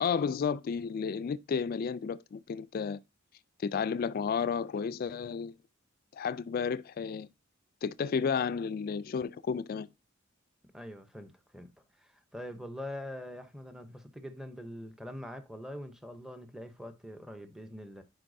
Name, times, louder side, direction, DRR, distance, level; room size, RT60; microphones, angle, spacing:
voice 1, 0.0-3.0 3.6-5.5 6.1-7.3 7.8-9.9, left 6 dB, 45° left, 0.3 m, -32 dB
voice 2, 10.7-11.7 12.0-18.0, equal, 5° right, 0.7 m, -43 dB
9.8 x 4.0 x 2.6 m
head